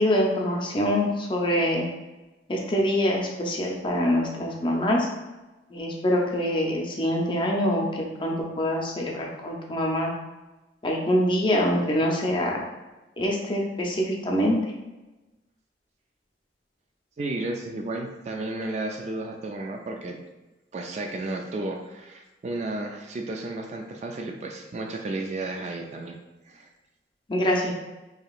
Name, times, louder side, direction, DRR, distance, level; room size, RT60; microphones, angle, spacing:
voice 1, 0.0-1.9 2.5-5.1 5.7-10.1 10.8-12.6 13.2-14.6 27.3-27.7, equal, 30° left, -1 dB, 0.6 m, -25 dB
voice 2, 17.2-20.2 20.7-26.2 26.5-26.7, right 2 dB, 40° right, 3 dB, 0.3 m, -33 dB
4.8 x 2.8 x 2.4 m, 1.1 s
head